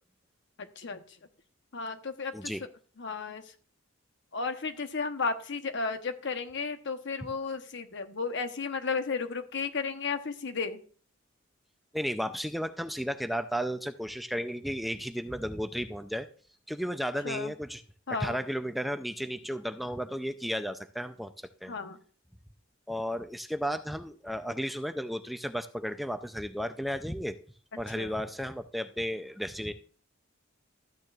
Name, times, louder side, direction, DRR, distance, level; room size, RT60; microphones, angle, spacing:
voice 1, 1.7-2.5 3.0-3.4 4.3-10.8 17.2-17.5 18.1-18.4 21.7-22.0 27.7-28.1, left 4 dB, 60° left, 8 dB, 1.0 m, -34 dB
voice 2, 11.9-16.3 16.7-17.8 18.2-21.3 21.6-21.7 22.9-27.4 27.8-29.7, equal, ahead, 8 dB, 0.4 m, -34 dB
13.5 x 9.1 x 2.4 m, 0.41 s
head